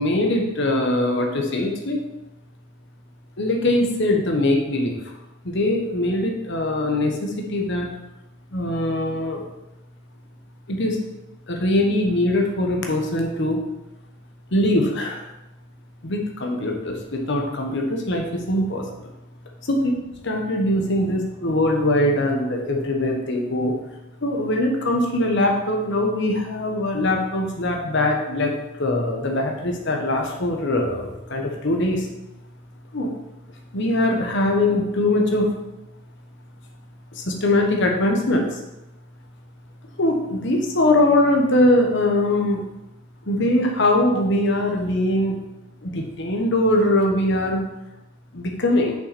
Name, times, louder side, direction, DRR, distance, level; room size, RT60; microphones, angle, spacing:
voice 1, 0.0-2.0 3.4-5.0 5.4-7.9 8.5-9.5 10.7-11.0 11.5-13.6 14.5-15.3 16.0-18.9 19.6-19.9 20.2-23.7 24.2-28.5 28.8-32.1 32.9-33.1 33.7-35.5 37.1-38.6 40.0-42.6 43.2-45.4 45.8-47.6 48.3-48.9, left 1 dB, 60° left, 1 dB, 1.2 m, -22 dB
6.5 x 5.7 x 4.2 m, 0.95 s
head